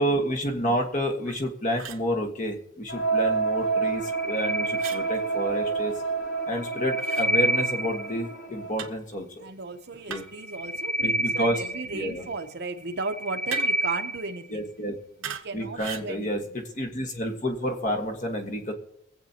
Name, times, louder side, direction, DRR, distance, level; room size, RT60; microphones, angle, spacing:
voice 1, 0.0-5.9 6.5-9.4 10.1-10.2 11.0-11.6 11.9-12.2 14.5-15.0 15.5-18.7, equal, 40° left, 3 dB, 1.6 m, -29 dB
sound 1, 1.2-1.4 1.8-2.1 4.8-5.0 7.0-7.3 8.8-9.0 10.1-10.5 13.5-13.9 15.2-15.5 15.8-16.1, right 7 dB, 80° right, 1.1 m, -37 dB
sound 2, 2.9-8.7, right 4 dB, 75° left, 2.1 m, -29 dB
sound 3, 4.0-5.5 6.5-8.3 10.3-12.4 12.9-14.4, right 1 dB, 15° left, 2.1 m, -29 dB
voice 2, 9.4-14.7 15.2-16.3, right 3 dB, 55° right, 6 dB, 0.9 m, -35 dB
23.0 x 8.0 x 2.9 m, 0.73 s
head